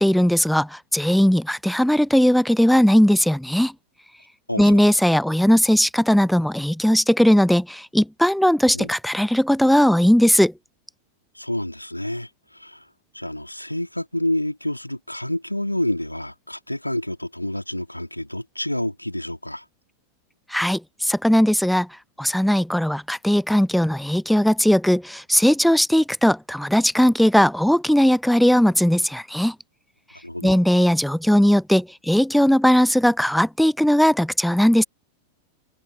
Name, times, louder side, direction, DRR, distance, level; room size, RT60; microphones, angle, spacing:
voice 1, 0.0-3.7 4.6-10.5 20.5-21.9 22.2-29.5 30.4-34.8, equal, ahead, 0.4 m, -18 dB
voice 2, 4.5-4.8 8.7-8.9 11.3-12.8 13.1-19.6 30.2-30.6, left 1 dB, 85° left, 2.8 m, -28 dB
figure-of-eight pair, 90°, 0 cm